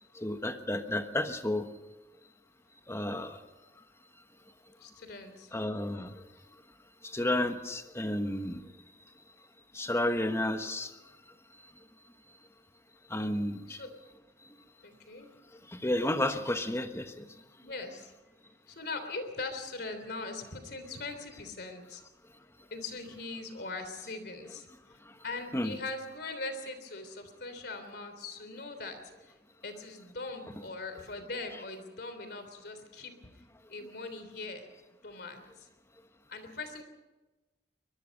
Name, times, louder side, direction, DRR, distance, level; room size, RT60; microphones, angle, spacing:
voice 1, 0.2-1.7 2.9-3.4 5.5-6.1 7.0-8.6 9.7-10.9 13.1-13.8 15.7-17.2 25.5-25.8, left 1 dB, 15° left, 8 dB, 1.3 m, -31 dB
voice 2, 4.8-5.5 10.4-10.7 13.7-13.9 14.8-15.3 17.6-18.1 18.7-22.0 22.7-24.7 25.2-29.0 29.3-29.4 29.6-33.1 33.7-34.6 35.0-35.7 36.3-36.8, left 3 dB, 65° left, 9 dB, 3.3 m, -41 dB
23.5 x 21.0 x 5.4 m, 1.1 s
head